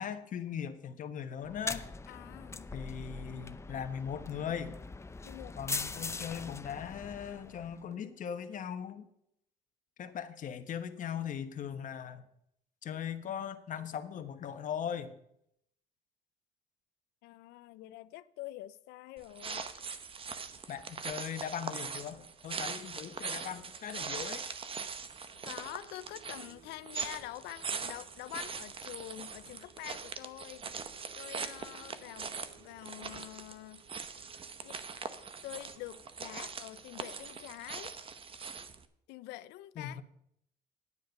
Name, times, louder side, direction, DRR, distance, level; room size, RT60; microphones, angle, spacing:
voice 1, 0.0-1.9 2.7-4.8 5.6-9.1 10.0-12.2 12.8-15.1 20.7-24.4 39.8-40.0, left 8 dB, 50° left, 1.2 m, -39 dB
sound 1, 1.4-7.8, left 3 dB, 15° left, 0.6 m, -41 dB
voice 2, 2.1-2.7 5.2-5.6 5.9-6.1 17.2-19.6 25.4-30.7 31.2-33.8 34.6-34.8 35.4-37.9 39.1-40.0, left 16 dB, 90° left, 0.6 m, -46 dB
sound 2, 19.2-38.9, right 5 dB, 35° right, 0.9 m, -42 dB
sound 3, 25.3-37.3, right 5 dB, 65° right, 3.8 m, -63 dB
9.8 x 9.6 x 5.4 m
cardioid pair, 110°, 17 cm